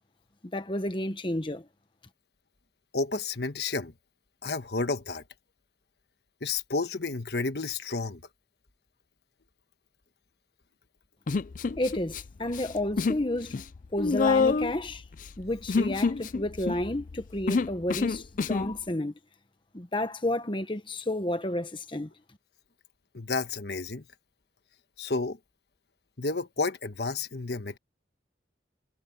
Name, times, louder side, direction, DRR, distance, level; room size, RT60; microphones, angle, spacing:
voice 1, 0.5-1.7 11.8-13.5 13.9-15.0 15.4-19.1 19.7-22.1, left 1 dB, 30° left, 1.2 m, -31 dB
voice 2, 2.9-3.9 4.4-5.2 6.4-8.2 23.1-24.0 25.0-25.4 26.2-27.8, left 3 dB, 65° left, 1.4 m, -31 dB
Human voice, 11.3-12.2 12.5-13.2 13.5-18.7, left 4 dB, 45° left, 0.4 m, -27 dB
head